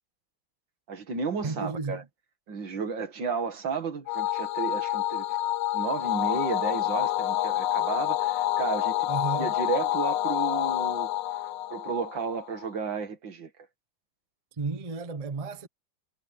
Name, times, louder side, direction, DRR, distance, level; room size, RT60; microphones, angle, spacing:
voice 1, 0.9-2.0 2.5-5.3 5.7-9.1 9.4-11.1 11.7-13.5, right 5 dB, 80° right, 2.7 m, -33 dB
voice 2, 1.4-2.1 9.1-9.5 14.6-15.7, right 4 dB, 25° right, 0.8 m, -33 dB
sound 1, 4.1-12.7, left 14 dB, 75° left, 1.3 m, -28 dB
omnidirectional pair, 2.0 m